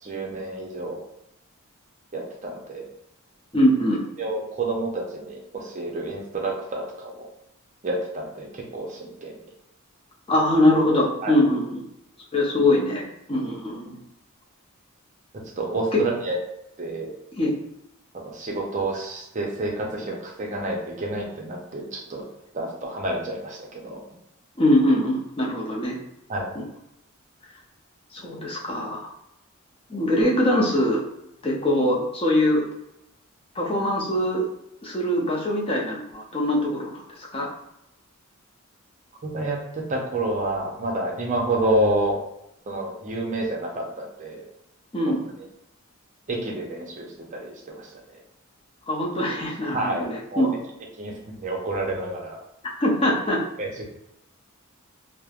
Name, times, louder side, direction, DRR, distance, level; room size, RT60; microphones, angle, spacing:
voice 1, 0.0-1.0 2.1-2.9 4.2-7.3 7.8-9.4 11.2-11.3 15.6-16.4 16.8-17.1 18.1-22.3 22.5-24.0 26.3-26.5 39.2-42.2 42.7-44.4 45.1-45.2 46.3-47.9 49.7-50.5 51.0-52.4 53.6-53.8, right 2 dB, 35° right, 0 dB, 0.5 m, -29 dB
voice 2, 3.5-4.0 10.3-11.8 12.3-14.0 15.9-16.0 17.4-17.5 24.6-26.0 26.5-26.6 28.1-29.0 29.9-31.0 31.4-32.7 33.6-34.4 34.8-37.5 44.9-45.2 48.9-50.6 52.8-53.4, left 1 dB, 25° left, -3 dB, 0.5 m, -22 dB
3.0 x 2.1 x 2.3 m, 0.83 s
head